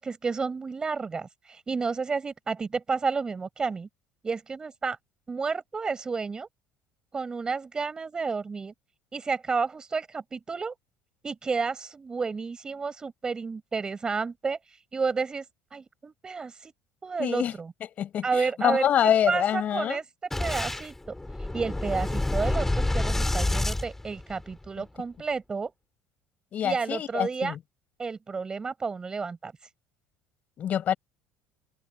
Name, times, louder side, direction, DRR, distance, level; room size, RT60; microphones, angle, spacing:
voice 1, 0.0-3.9 4.2-5.0 5.3-6.5 7.1-8.7 9.1-10.7 11.2-15.4 15.7-16.7 17.0-17.7 18.2-20.0 20.4-25.7 26.6-27.6 28.0-29.5, right 4 dB, 20° right, 4.8 m, -31 dB
voice 2, 17.2-17.5 18.0-20.0 26.5-27.6 30.6-30.9, left 10 dB, 40° left, 5.7 m, -26 dB
Boom, 20.3-24.7, left 2 dB, 5° left, 4.6 m, -28 dB
cardioid pair, 140°, 4 cm